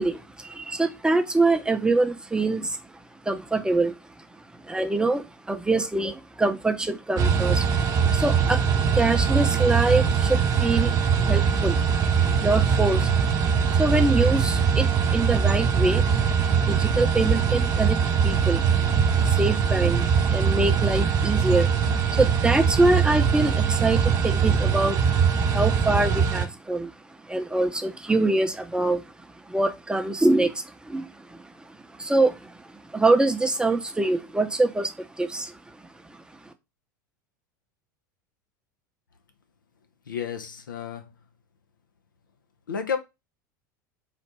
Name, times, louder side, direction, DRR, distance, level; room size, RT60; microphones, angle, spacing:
voice 1, 0.0-7.7 8.1-10.9 11.2-12.0 12.4-13.2 13.7-16.1 16.5-18.9 19.2-21.7 22.1-35.8 36.0-36.5, right 2 dB, 10° right, 0.7 m, -25 dB
sound 1, 7.2-26.4, right 6 dB, 40° right, 0.8 m, -22 dB
voice 2, 40.1-41.1 42.7-43.0, left 7 dB, 85° left, 0.7 m, -31 dB
4.1 x 2.5 x 4.6 m
hypercardioid pair, 85°, 10 cm